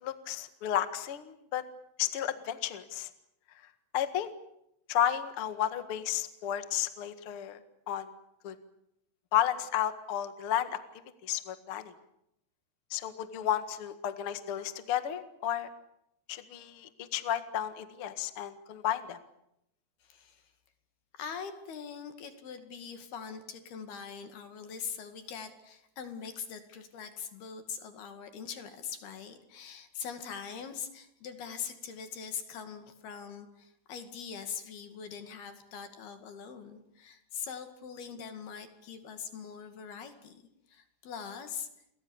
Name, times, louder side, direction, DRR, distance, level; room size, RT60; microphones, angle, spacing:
voice 1, 0.0-1.6 2.0-3.1 3.9-4.3 4.9-7.6 7.9-8.1 8.4-8.5 9.3-10.8 11.2-11.9 12.9-15.7 16.3-19.2, left 11 dB, 80° left, 10 dB, 1.2 m, -32 dB
voice 2, 20.0-20.4 21.1-40.4 40.7-41.7, left 7 dB, 60° left, 8 dB, 3.9 m, -42 dB
30.0 x 23.5 x 7.2 m, 0.80 s
omnidirectional pair, 5.5 m